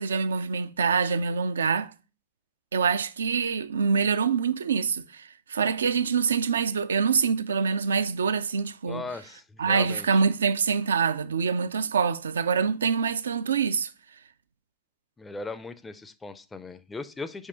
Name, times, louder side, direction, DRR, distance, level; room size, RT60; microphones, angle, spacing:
voice 1, 0.0-1.9 2.7-9.0 9.6-13.9, right 5 dB, 70° right, 0.4 m, -25 dB
voice 2, 8.9-10.2 15.2-17.5, left 3 dB, 10° left, 0.5 m, -38 dB
5.4 x 4.8 x 4.4 m
figure-of-eight pair, 90°, 0 cm